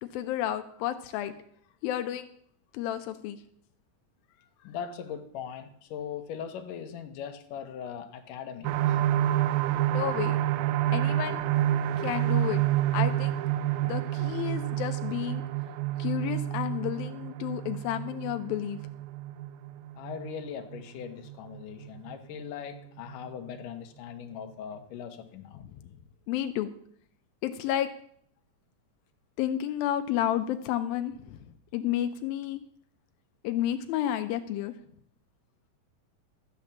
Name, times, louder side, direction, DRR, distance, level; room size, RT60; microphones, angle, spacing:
voice 1, 0.0-1.3 1.8-2.3 2.7-3.4 9.9-10.4 10.9-11.4 12.0-12.6 12.9-13.3 13.8-15.4 16.0-18.8 25.7-25.8 26.3-26.7 27.4-27.9 29.4-31.4 31.7-32.6 33.4-34.7, left 11 dB, 90° left, 8 dB, 2.5 m, -31 dB
voice 2, 4.6-9.0 20.0-25.6, left 8 dB, 70° left, 6 dB, 2.6 m, -40 dB
sound 1, 8.6-22.1 22.6-22.7 23.1-23.2, right 13 dB, 90° right, 2.5 m, -29 dB
13.5 x 8.1 x 7.2 m, 0.64 s
omnidirectional pair, 4.1 m